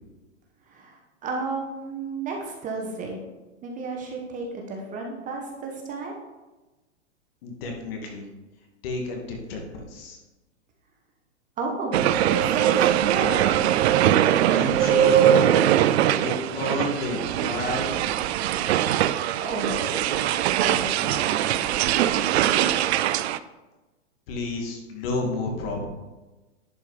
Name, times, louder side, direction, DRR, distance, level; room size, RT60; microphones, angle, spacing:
voice 1, 0.7-3.2 3.6-6.1 11.6-13.5 19.3-21.6, right 3 dB, 20° right, 1 dB, 1.1 m, -32 dB
voice 2, 7.4-8.3 8.8-10.2 14.5-15.6 16.2-18.0 24.3-25.9, left 2 dB, 50° left, 1 dB, 2.2 m, -30 dB
sound 1, 11.9-23.4, right 11 dB, 60° right, 0.5 m, -22 dB
10.5 x 4.7 x 5.0 m, 1.1 s
hypercardioid pair, 140°, 37 cm